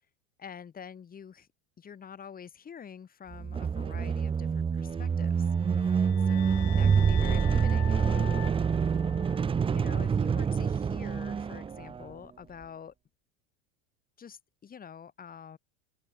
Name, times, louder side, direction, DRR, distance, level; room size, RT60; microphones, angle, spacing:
voice 1, 0.4-1.5 1.8-8.4 9.7-12.9 14.2-15.6, left 7 dB, 25° left, 4.2 m, -46 dB
sound 1, 3.3-12.1, right 6 dB, 15° right, 0.7 m, -27 dB
sound 2, 5.5-9.8, left 27 dB, 70° left, 1.8 m, -44 dB
open air
supercardioid pair, 110°, 33 cm